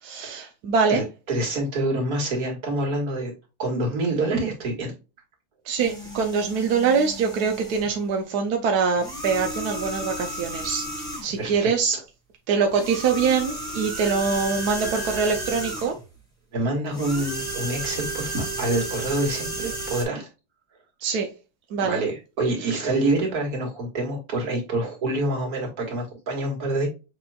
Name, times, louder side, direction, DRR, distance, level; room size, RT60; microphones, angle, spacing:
voice 1, 0.0-1.0 5.6-10.9 11.2-12.0 12.5-16.0 21.0-21.3 21.7-22.0 22.7-22.8, right 5 dB, 65° right, 1.0 m, -24 dB
voice 2, 0.9-3.3 3.6-4.9 11.4-12.0 16.5-20.3 21.8-26.9, right 2 dB, 50° right, 2.1 m, -27 dB
sound 1, 5.8-7.9 9.0-11.4 12.7-16.0 16.9-20.1, right 1 dB, ahead, 1.6 m, -33 dB
6.7 x 3.0 x 2.2 m
omnidirectional pair, 2.2 m